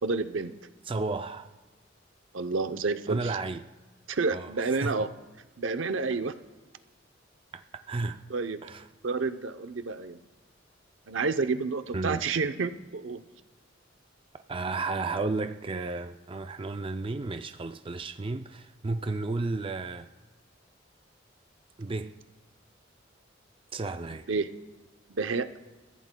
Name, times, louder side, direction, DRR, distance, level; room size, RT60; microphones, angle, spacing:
voice 1, 0.0-0.5 2.3-3.4 4.1-5.1 5.6-6.3 8.3-8.6 9.0-10.2 11.1-13.2 24.3-24.5 25.1-25.5, right 4 dB, 75° right, 0.7 m, -29 dB
voice 2, 0.9-1.5 3.1-3.7 4.3-5.0 7.5-8.2 8.6-8.9 11.9-12.2 14.5-20.1 21.8-22.2 23.7-24.3, right 3 dB, 30° right, 0.4 m, -33 dB
29.5 x 14.5 x 2.3 m
head